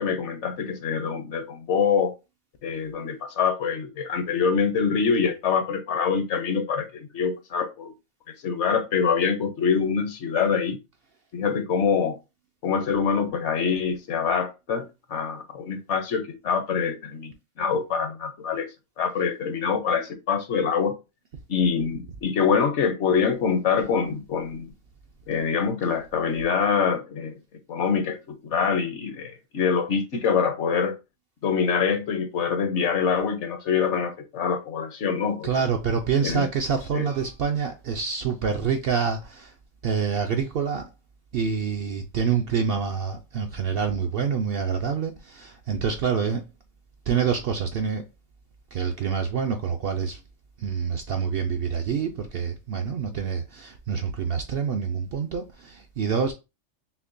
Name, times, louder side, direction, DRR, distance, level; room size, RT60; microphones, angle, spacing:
voice 1, 0.0-2.1 2.6-7.9 8.4-10.8 11.3-12.2 12.6-18.7 19.0-21.0 21.5-24.7 25.3-27.4 27.7-30.9 31.4-35.5 36.2-36.5 36.9-37.1, left 6 dB, 65° left, 1.0 m, -25 dB
voice 2, 35.4-39.5 39.8-40.8 41.3-46.4 47.1-48.0 48.7-50.2 50.6-56.3, right 6 dB, 65° right, 0.6 m, -26 dB
5.7 x 2.1 x 2.5 m
omnidirectional pair, 1.4 m